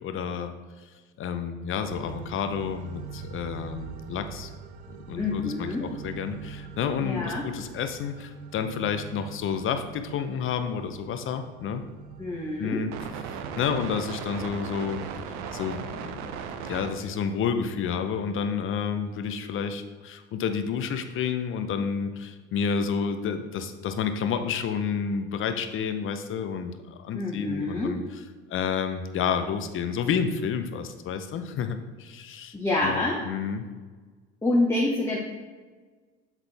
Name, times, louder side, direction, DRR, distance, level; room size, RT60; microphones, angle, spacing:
voice 1, 0.0-0.5 1.2-4.5 5.1-11.8 12.6-12.9 13.6-15.1 15.5-16.3 16.7-28.0 28.5-32.5 32.8-33.6, left 6 dB, 40° left, 8 dB, 0.7 m, -30 dB
sound 1, 1.8-16.9, right 7 dB, 55° right, 0.6 m, -40 dB
voice 2, 5.1-5.9 7.0-7.5 12.2-12.8 27.1-28.0 32.5-33.2 34.4-35.2, left 2 dB, 10° left, -3 dB, 0.9 m, -27 dB
7.3 x 3.9 x 3.4 m, 1.4 s
hypercardioid pair, 70°, 33 cm